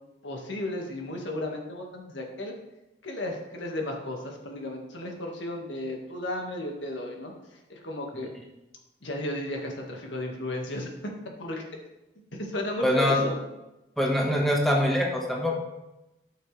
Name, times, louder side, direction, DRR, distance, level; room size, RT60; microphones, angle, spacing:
voice 1, 0.2-2.5 3.0-8.3 9.0-11.1 11.4-11.6 12.3-13.4, left 1 dB, 85° left, 1 dB, 1.8 m, -34 dB
voice 2, 12.8-13.2 14.0-15.5, equal, ahead, -2 dB, 1.5 m, -24 dB
13.5 x 6.5 x 3.4 m, 0.96 s
head